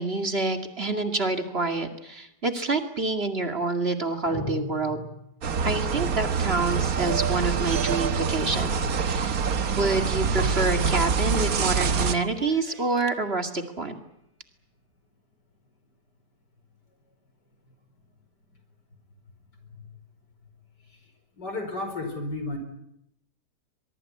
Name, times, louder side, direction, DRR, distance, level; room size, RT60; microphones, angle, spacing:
voice 1, 0.0-5.0 5.6-9.4 9.8-14.0, right 3 dB, 35° right, 6 dB, 2.4 m, -27 dB
sound 1, 4.3-5.7, equal, 15° left, 6.5 m, -36 dB
sound 2, 5.4-12.2, right 5 dB, 60° right, 1.6 m, -25 dB
Clock, 6.0-6.1 6.3-6.4 6.5-13.2, right 3 dB, 20° right, 1.4 m, -43 dB
voice 2, 21.3-22.6, left 2 dB, 85° left, 7 dB, 5.3 m, -32 dB
23.5 x 22.5 x 9.8 m, 0.80 s
omnidirectional pair, 1.8 m